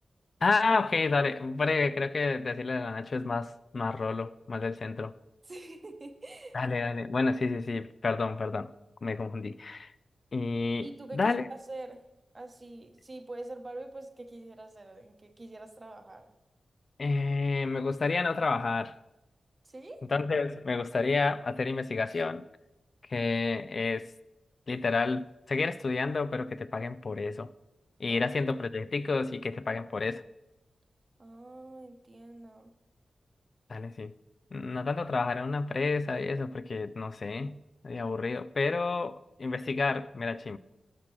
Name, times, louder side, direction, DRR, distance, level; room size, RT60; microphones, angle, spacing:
voice 1, 0.4-5.1 6.5-8.7 9.0-9.9 10.3-10.9 11.1-11.4 17.0-19.0 20.1-22.4 23.1-24.1 24.7-27.5 28.0-30.2 33.7-34.1 34.5-37.6 37.8-40.6, left 3 dB, 55° left, 0.3 m, -30 dB
voice 2, 5.4-6.6 10.8-12.0 12.3-16.3 19.6-20.0 28.1-28.3 31.2-32.7, right 2 dB, 35° right, 0.9 m, -45 dB
12.0 x 5.9 x 3.1 m
cardioid pair, 65°, 0 cm